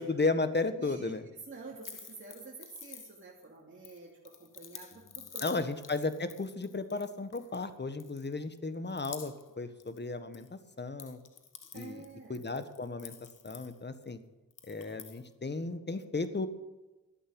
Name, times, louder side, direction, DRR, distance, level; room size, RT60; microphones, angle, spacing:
voice 1, 0.0-1.3 5.4-11.2 11.7-12.0 12.3-13.1 13.4-14.2 14.7-16.5, left 3 dB, 30° left, 11 dB, 1.5 m, -34 dB
voice 2, 0.8-1.1 1.5-4.9 5.2-5.6 11.7-12.4, right 3 dB, 35° right, -4 dB, 3.0 m, -48 dB
sound 1, 1.8-3.4 3.8-7.7 8.0-8.6 8.9-9.5 9.8-10.5 10.8-14.1 14.5-15.3, left 7 dB, 60° left, 1.3 m, -49 dB
12.5 x 8.8 x 9.0 m, 1.1 s
cardioid pair, 65°, 36 cm